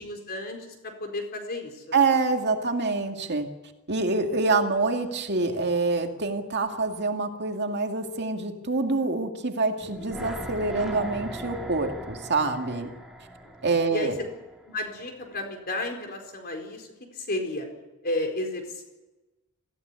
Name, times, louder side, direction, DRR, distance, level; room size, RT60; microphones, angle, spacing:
voice 1, 0.0-2.1 13.4-13.5 13.9-14.1 14.6-17.7 18.0-18.8, left 2 dB, 45° left, 3 dB, 4.3 m, -33 dB
voice 2, 1.9-3.5 3.9-12.9 13.6-14.2, right 3 dB, 50° right, 4 dB, 2.3 m, -26 dB
sound 1, 9.8-15.0 15.3-15.4, equal, ahead, 3.2 m, -39 dB
22.0 x 15.5 x 9.7 m, 1.1 s
head